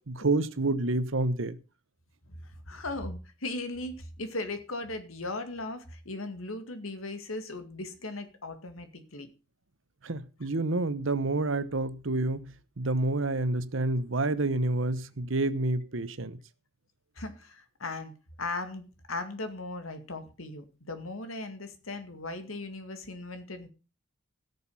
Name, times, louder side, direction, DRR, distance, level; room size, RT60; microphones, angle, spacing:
voice 1, 0.0-1.6 10.0-16.4, right 2 dB, 75° right, 1.0 m, -29 dB
voice 2, 2.3-9.3 17.2-23.7, left 2 dB, 90° left, 2.2 m, -38 dB
17.0 x 6.9 x 5.6 m
head